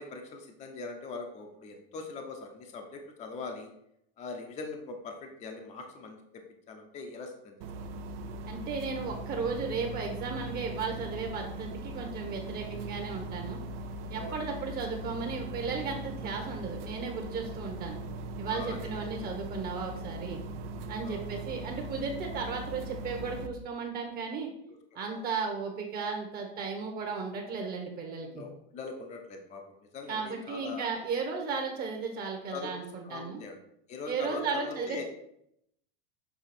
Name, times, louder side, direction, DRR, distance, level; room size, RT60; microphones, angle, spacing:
voice 1, 0.0-3.7 4.2-7.9 14.2-14.4 18.5-19.1 21.0-21.2 24.9-25.2 28.2-30.9 32.5-32.7 33.0-33.6 33.9-35.0, left 4 dB, 25° left, 3 dB, 0.7 m, -42 dB
sound 1, 7.6-23.5, right 2 dB, 75° right, 0.8 m, -40 dB
voice 2, 8.4-13.6 14.1-18.0 18.4-20.4 20.9-24.5 24.9-28.5 30.1-33.4 34.0-35.0, right 4 dB, 30° right, 2 dB, 1.1 m, -35 dB
7.0 x 3.5 x 4.3 m, 0.75 s
supercardioid pair, 150°, 29 cm